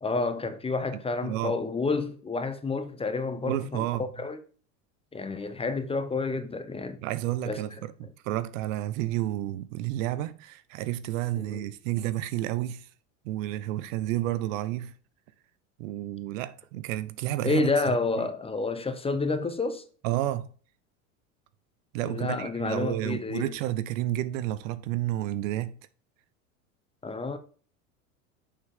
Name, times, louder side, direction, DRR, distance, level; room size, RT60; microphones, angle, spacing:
voice 1, 0.0-3.9 4.1-4.4 5.1-7.0 7.5-7.6 11.4-11.7 17.4-19.8 22.0-23.5 27.0-27.4, left 3 dB, 15° left, 0.8 m, -29 dB
voice 2, 1.2-1.6 3.4-4.1 7.0-12.9 13.2-14.9 15.8-17.7 18.2-18.3 20.0-20.5 21.9-25.7, right 14 dB, 65° right, 0.8 m, -31 dB
6.8 x 5.5 x 3.6 m
hypercardioid pair, 100°, 42 cm